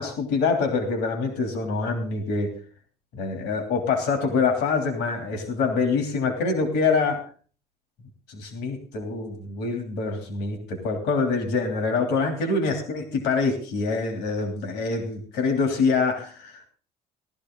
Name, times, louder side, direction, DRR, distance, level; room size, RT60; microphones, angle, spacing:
voice 1, 0.0-2.5 3.1-7.2 8.3-16.7, left 4 dB, 85° left, 4 dB, 3.1 m, -25 dB
18.0 x 12.0 x 3.8 m, 0.42 s
cardioid pair, 110°, 17 cm